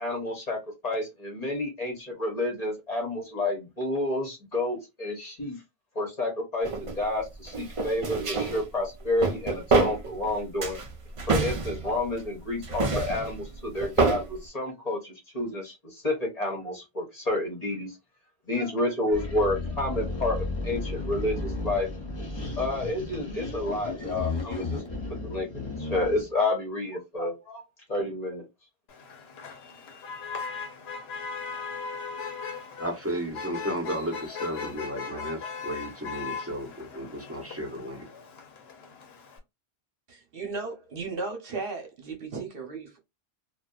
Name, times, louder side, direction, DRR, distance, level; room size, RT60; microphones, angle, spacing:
voice 1, 0.0-5.6 5.9-10.8 11.3-18.0 18.5-21.9 22.6-24.8 25.2-27.6 27.9-28.4, left 2 dB, 40° left, 0.9 m, -30 dB
sound 1, 6.6-7.0 7.5-8.6 9.0-10.3 10.6-12.3 12.6-14.3, right 3 dB, 40° right, 0.5 m, -27 dB
sound 2, 19.1-26.3, left 2 dB, 25° left, 1.1 m, -34 dB
Motor vehicle (road), 28.9-39.4, left 5 dB, 75° left, 0.9 m, -39 dB
voice 2, 32.8-38.0, equal, 15° right, 0.8 m, -34 dB
voice 3, 40.1-43.0, right 4 dB, 65° right, 1.0 m, -35 dB
2.6 x 2.3 x 2.3 m
omnidirectional pair, 1.1 m